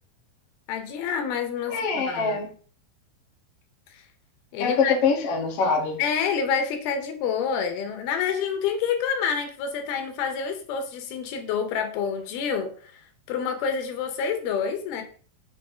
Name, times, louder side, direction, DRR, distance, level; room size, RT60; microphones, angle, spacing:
voice 1, 0.7-2.4 3.9-4.0 4.5-4.9 6.0-13.0 13.3-15.0, left 7 dB, 85° left, 6 dB, 3.0 m, -28 dB
voice 2, 1.7-2.5 4.6-6.0, left 4 dB, 50° left, 1 dB, 2.0 m, -24 dB
7.5 x 3.2 x 5.5 m, 0.43 s
omnidirectional pair, 4.3 m